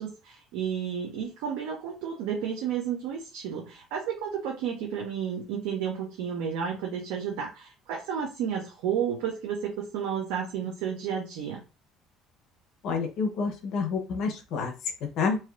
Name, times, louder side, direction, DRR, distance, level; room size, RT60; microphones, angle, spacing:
voice 1, 0.0-11.6, right 8 dB, 85° right, 0 dB, 0.7 m, -32 dB
voice 2, 12.8-14.7 15.2-15.4, left 5 dB, 60° left, 3 dB, 0.8 m, -28 dB
3.4 x 2.7 x 2.4 m, 0.30 s
cardioid pair, 135°, 0 cm